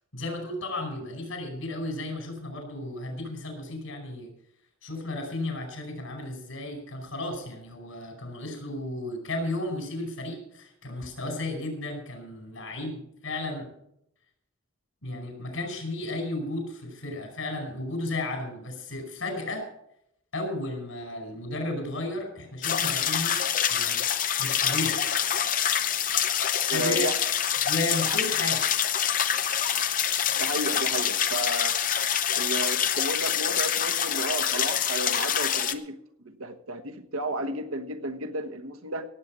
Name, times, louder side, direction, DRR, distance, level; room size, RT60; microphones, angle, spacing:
voice 1, 0.1-4.3 4.8-13.7 15.0-19.7 20.3-23.4 23.7-24.0 24.4-25.3 26.7-27.1 27.6-28.6, left 2 dB, 75° left, 3 dB, 5.2 m, -34 dB
sound 1, 22.6-35.7, left 9 dB, 40° left, 0.7 m, -26 dB
voice 2, 26.7-27.1 28.0-28.2 30.4-31.8 32.4-35.9 36.2-39.0, right 1 dB, 85° right, 7 dB, 1.3 m, -32 dB
17.0 x 8.3 x 6.2 m, 0.76 s
head